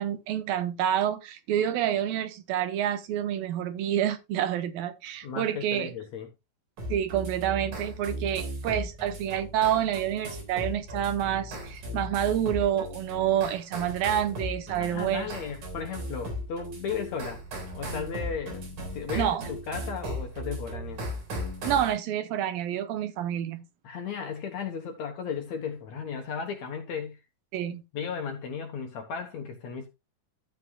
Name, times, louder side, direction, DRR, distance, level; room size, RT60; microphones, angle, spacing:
voice 1, 0.0-5.9 6.9-15.3 19.1-19.4 21.6-23.6 27.5-27.8, right 10 dB, 75° right, 2.7 m, -28 dB
voice 2, 5.2-6.3 14.8-17.4 17.7-21.0 23.8-27.2 27.9-29.9, left 6 dB, 60° left, 2.0 m, -35 dB
sound 1, 6.8-21.9, equal, 55° right, 5.5 m, -37 dB
13.0 x 8.4 x 2.3 m
omnidirectional pair, 4.3 m